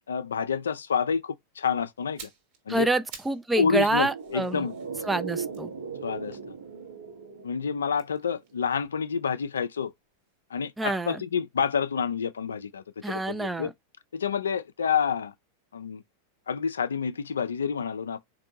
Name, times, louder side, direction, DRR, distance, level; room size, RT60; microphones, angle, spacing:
voice 1, 0.1-2.2 2.7-2.9 3.6-4.7 6.0-6.4 7.4-9.9 10.5-13.7 14.1-15.3 15.7-16.0 16.5-18.2, left 6 dB, 70° left, 0.3 m, -28 dB
sound 1, 2.0-3.5 3.8-7.1 7.9-9.9 10.2-10.4, right 6 dB, 45° right, 1.4 m, -51 dB
voice 2, 2.7-4.6 5.1-5.7 10.8-11.2 13.0-13.7, right 2 dB, 10° right, 0.4 m, -27 dB
sound 2, 3.7-8.3 8.5-8.6, right 6 dB, 70° right, 1.1 m, -38 dB
4.3 x 2.5 x 2.7 m
figure-of-eight pair, 90°, 0 cm